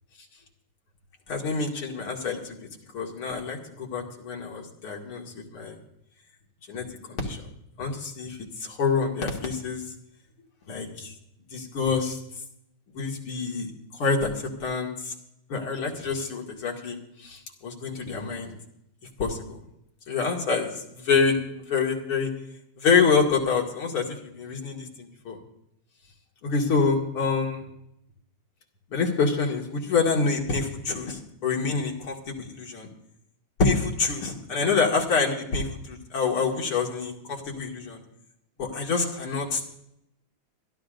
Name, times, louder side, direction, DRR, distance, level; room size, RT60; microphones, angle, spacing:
voice 1, 1.3-2.6 2.9-5.7 6.7-7.4 7.8-9.8 10.7-11.1 11.5-12.2 12.9-14.3 14.6-15.1 15.5-18.5 19.2-19.6 20.1-22.3 22.8-25.4 26.4-27.7 28.9-32.9 33.6-38.0 38.6-39.8, left 5 dB, 70° left, 0 dB, 3.1 m, -27 dB
26.0 x 12.0 x 2.6 m, 0.76 s
omnidirectional pair, 2.4 m